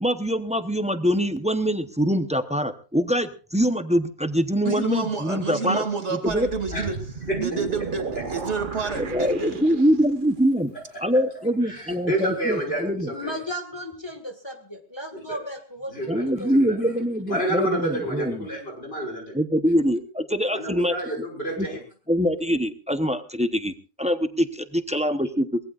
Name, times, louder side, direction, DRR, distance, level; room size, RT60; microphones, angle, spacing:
voice 1, 0.0-5.8 6.1-6.5 9.0-10.7 11.0-13.1 16.1-18.5 19.3-21.0 21.6-21.7 22.1-25.6, equal, 5° right, 9 dB, 0.9 m, -24 dB
voice 2, 4.6-7.0 7.4-9.6, right 4 dB, 70° right, 5 dB, 2.9 m, -29 dB
sound 1, 6.3-10.3, right 5 dB, 45° right, 1.1 m, -34 dB
voice 3, 11.6-13.3 15.3-15.4 15.9-16.2 16.5-16.7 17.3-19.3 20.5-21.8, right 1 dB, 55° left, 1 dB, 6.1 m, -29 dB
voice 4, 13.1-16.5, equal, 20° left, 4 dB, 2.0 m, -35 dB
23.5 x 19.5 x 2.5 m, 0.36 s
omnidirectional pair, 1.2 m